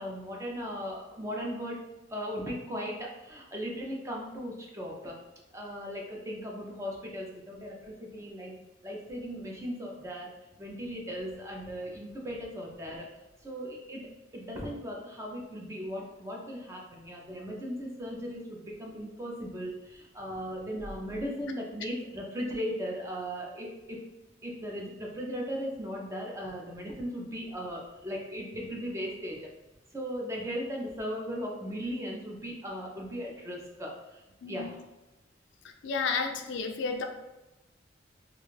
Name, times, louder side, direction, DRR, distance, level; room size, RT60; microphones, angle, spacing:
voice 1, 0.0-1.8 2.1-5.2 5.5-8.5 8.8-10.3 10.6-13.1 13.4-24.0 24.4-29.4 29.9-34.2 34.5-34.8, equal, 15° right, -1 dB, 0.4 m, -37 dB
voice 2, 34.4-34.7 35.8-37.0, left 4 dB, 65° left, 5 dB, 0.3 m, -31 dB
2.5 x 2.3 x 3.1 m, 0.98 s
head